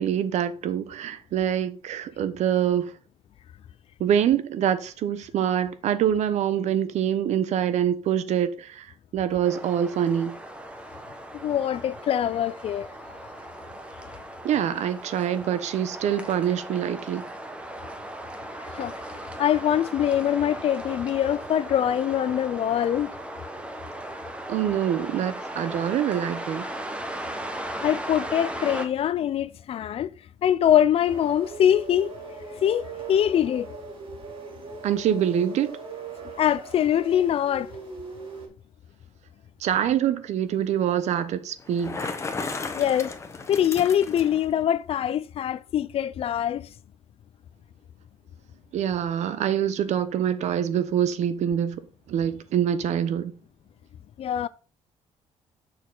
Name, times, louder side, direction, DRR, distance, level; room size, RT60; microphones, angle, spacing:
voice 1, 0.0-2.9 4.0-8.9 9.1-10.3 14.4-17.2 24.5-26.7 34.8-35.8 39.6-42.1 48.7-51.8 52.1-53.3, right 9 dB, 70° right, 0.9 m, -25 dB
sound 1, 9.4-28.9, right 1 dB, 10° right, 1.1 m, -37 dB
voice 2, 11.3-12.9 18.8-18.9 19.4-23.1 27.8-30.1 30.4-32.1 32.6-33.7 36.4-37.7 42.7-43.2 43.5-46.7 54.2-54.5, left 10 dB, 55° left, 0.5 m, -23 dB
sound 2, 31.1-38.5, right 4 dB, 45° right, 2.8 m, -40 dB
Bicycle, 41.6-44.5, left 3 dB, 25° left, 1.1 m, -34 dB
6.9 x 6.3 x 3.9 m
cardioid pair, 120°, 12 cm